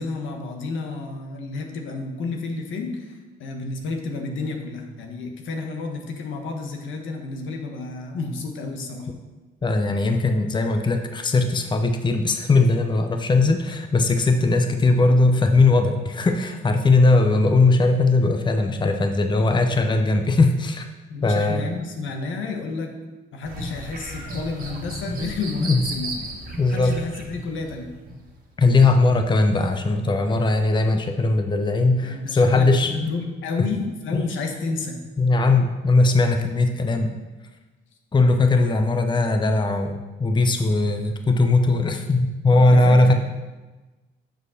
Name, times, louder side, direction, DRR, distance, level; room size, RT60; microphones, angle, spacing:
voice 1, 0.0-9.1 21.1-22.9 23.3-26.3 26.7-27.9 31.9-35.0 42.5-43.1, left 3 dB, 75° left, 3 dB, 1.2 m, -31 dB
voice 2, 9.6-20.9 21.2-21.6 25.6-25.8 26.6-27.0 28.6-33.1 33.6-33.7 34.1-34.2 35.2-37.1 38.1-43.1, left 3 dB, 25° left, 6 dB, 0.7 m, -19 dB
sound 1, 23.4-28.4 28.8-28.9, right 1 dB, 45° right, 1.7 m, -34 dB
6.3 x 5.1 x 6.4 m, 1.2 s
cardioid pair, 90°, 20 cm